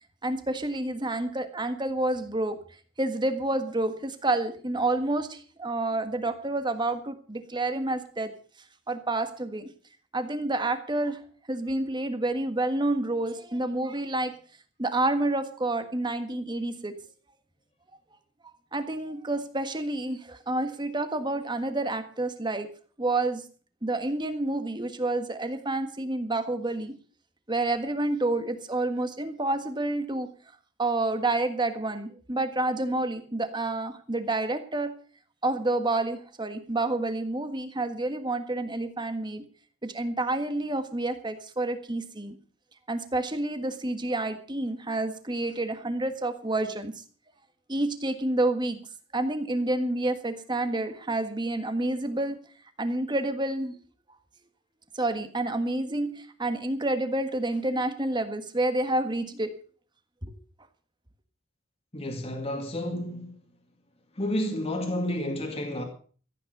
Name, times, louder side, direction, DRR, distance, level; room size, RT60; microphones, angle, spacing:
voice 1, 0.2-2.6 3.0-8.3 8.9-9.7 10.1-11.2 11.5-14.3 14.8-16.9 18.7-22.7 23.0-23.5 23.8-27.0 27.5-30.3 30.8-34.9 35.4-39.4 39.8-42.4 42.9-47.0 47.7-52.4 52.8-53.8 54.9-59.6 60.2-60.3, right 2 dB, 20° right, 1.6 m, -29 dB
voice 2, 61.9-63.4 64.2-65.8, left 1 dB, 30° left, 2.2 m, -31 dB
15.0 x 9.0 x 6.6 m
head